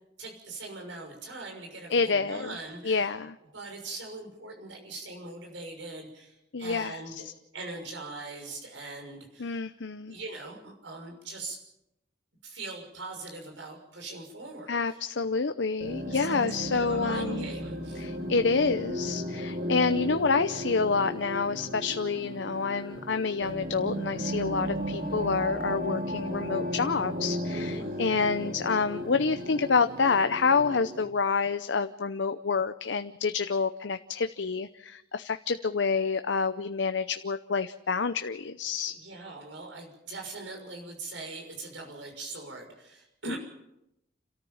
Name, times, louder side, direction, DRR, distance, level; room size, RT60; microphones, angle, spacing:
voice 1, 0.2-3.1 3.5-7.3 7.5-9.6 10.1-11.6 12.4-15.0 16.1-18.1 27.5-28.0 38.9-43.4, right 2 dB, 85° right, 2 dB, 6.2 m, -41 dB
voice 2, 1.9-2.5 2.8-3.4 6.5-7.0 9.4-10.2 14.7-17.5 18.0-38.9 43.3-43.4, left 4 dB, 80° left, 9 dB, 0.7 m, -28 dB
sound 1, 15.8-31.0, equal, 45° right, 2.6 m, -35 dB
29.5 x 13.5 x 7.2 m, 0.86 s
head